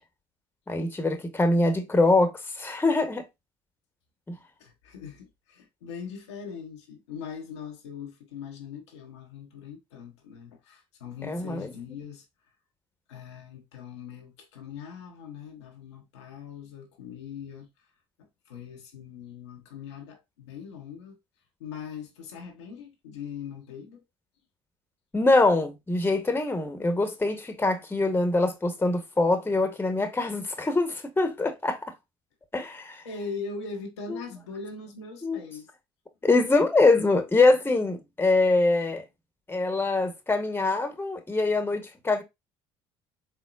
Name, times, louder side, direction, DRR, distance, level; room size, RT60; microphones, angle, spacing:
voice 1, 0.7-3.3 4.3-4.4 11.3-11.7 25.1-31.9 32.5-33.0 34.1-34.2 35.2-35.4 36.2-39.0 39.5-42.2, left 2 dB, 15° left, 1.1 m, -24 dB
voice 2, 4.6-12.2 13.1-17.7 18.5-21.2 21.6-24.0 32.6-32.7 33.0-35.7, left 6 dB, 90° left, 1.0 m, -41 dB
4.3 x 3.7 x 2.4 m
hypercardioid pair, 65°, 14 cm